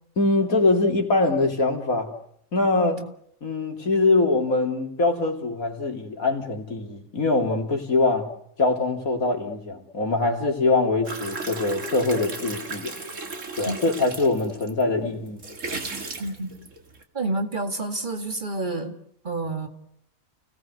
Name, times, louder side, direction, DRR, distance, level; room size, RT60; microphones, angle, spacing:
voice 1, 0.2-2.1 2.5-3.0 3.4-8.3 8.6-12.9 13.5-15.4, left 3 dB, 75° left, 3 dB, 3.6 m, -23 dB
sound 1, 11.0-14.8 15.3-17.0, right 3 dB, 60° right, 2.6 m, -35 dB
voice 2, 16.2-16.5 17.1-18.9 19.2-19.7, right 2 dB, 35° right, 5 dB, 2.3 m, -29 dB
30.0 x 18.0 x 7.9 m, 0.72 s
omnidirectional pair, 1.5 m